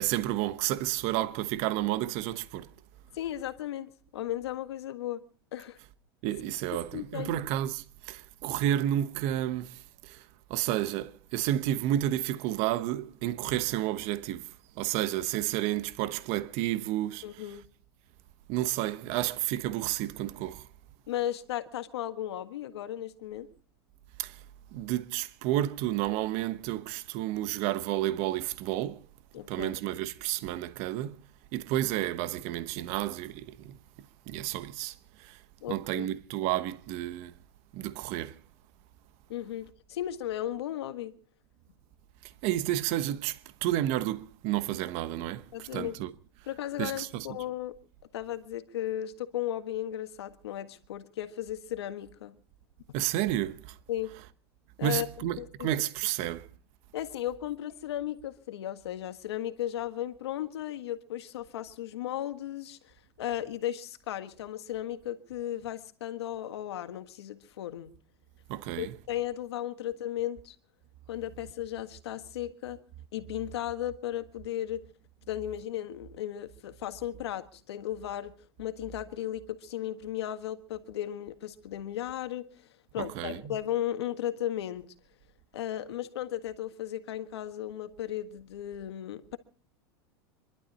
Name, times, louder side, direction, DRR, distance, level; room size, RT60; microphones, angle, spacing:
voice 1, 0.0-2.7 6.2-17.4 18.5-20.7 24.2-24.4 24.7-29.0 29.5-31.2 31.5-33.8 34.3-35.4 35.7-37.3 37.7-38.4 42.2-46.1 46.8-47.3 52.9-53.8 54.8-56.5 68.5-68.9 83.0-83.6, right 13 dB, 55° right, 1.0 m, -31 dB
voice 2, 3.1-5.2 5.5-5.8 6.9-7.4 17.2-17.7 21.1-23.5 29.3-29.7 35.6-36.1 39.3-41.1 45.5-46.0 46.5-47.7 48.1-52.3 53.9-54.1 54.8-55.7 56.9-67.9 68.8-70.5 71.1-72.8 73.1-74.9 75.3-78.3 78.6-84.9 85.5-89.4, left 12 dB, 85° left, 1.6 m, -35 dB
26.0 x 12.0 x 4.2 m
supercardioid pair, 120°, 13 cm